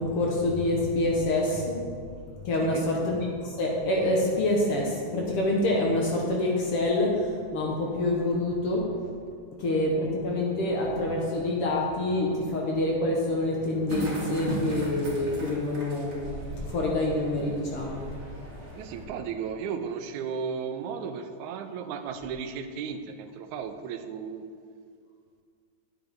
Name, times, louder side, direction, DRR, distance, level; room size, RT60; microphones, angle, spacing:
voice 1, 0.0-8.9 9.6-18.0, left 1 dB, 60° left, -2 dB, 1.7 m, -27 dB
voice 2, 2.6-2.9 18.7-24.5, right 6 dB, 85° right, 8 dB, 2.0 m, -35 dB
sound 1, 13.9-19.0, right 1 dB, 35° right, 1.2 m, -37 dB
9.2 x 8.6 x 3.5 m, 2.2 s
omnidirectional pair, 3.4 m